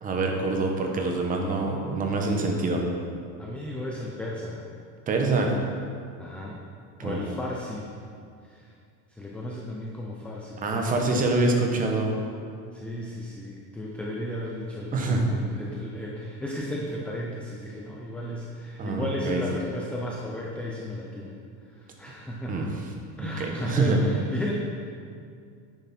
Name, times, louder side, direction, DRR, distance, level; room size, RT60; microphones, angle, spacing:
voice 1, 0.0-2.8 5.1-5.5 7.0-7.3 10.6-12.1 14.9-15.3 18.8-19.4 22.5-22.9 23.2-24.0, right 3 dB, 20° right, 2 dB, 1.0 m, -25 dB
voice 2, 3.4-4.6 6.2-6.6 7.0-7.9 8.5-8.7 9.2-11.3 12.7-21.3 21.8-22.7 23.2-24.5, left 1 dB, 5° left, -3 dB, 0.3 m, -34 dB
10.5 x 9.0 x 4.2 m, 2.3 s
cardioid pair, 170°, 39 cm